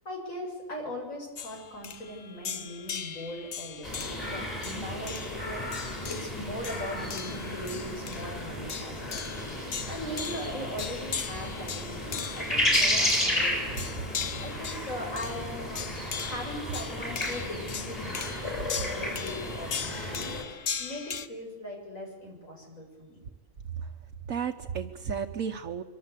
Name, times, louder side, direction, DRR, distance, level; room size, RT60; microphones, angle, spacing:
voice 1, 0.0-13.8 14.4-23.2, equal, 90° left, 0 dB, 7.7 m, -40 dB
sound 1, 1.4-21.3, left 7 dB, 60° left, 1.3 m, -39 dB
sound 2, 3.8-20.4, left 1 dB, 30° left, 6.4 m, -33 dB
voice 2, 24.3-25.8, right 7 dB, 85° right, 2 dB, 1.5 m, -33 dB
25.5 x 24.5 x 8.3 m, 1.2 s
omnidirectional pair, 1.3 m